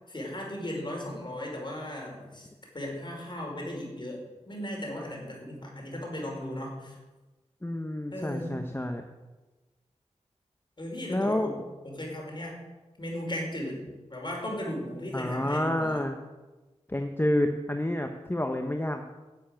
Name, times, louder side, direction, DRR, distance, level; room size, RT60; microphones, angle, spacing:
voice 1, 0.1-2.5 2.7-7.0 8.1-8.5 10.8-11.6 11.8-12.5 13.0-13.8 14.1-16.1, left 1 dB, 40° left, -1 dB, 5.2 m, -36 dB
voice 2, 7.6-9.0 11.1-11.5 15.1-16.2 16.9-19.0, left 1 dB, 20° left, 5 dB, 1.0 m, -29 dB
11.5 x 7.6 x 8.9 m, 1.2 s
cardioid pair, 55°, 12 cm